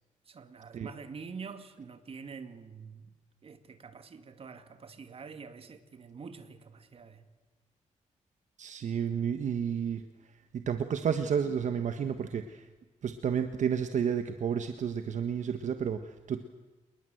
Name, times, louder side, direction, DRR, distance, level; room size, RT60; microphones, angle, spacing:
voice 1, 0.3-3.1 3.4-7.2, right 5 dB, 45° right, 9 dB, 2.4 m, -46 dB
voice 2, 8.6-12.7 13.0-16.4, right 7 dB, 65° right, 8 dB, 1.4 m, -31 dB
27.0 x 21.0 x 7.9 m, 1.2 s
cardioid pair, 115°, 13 cm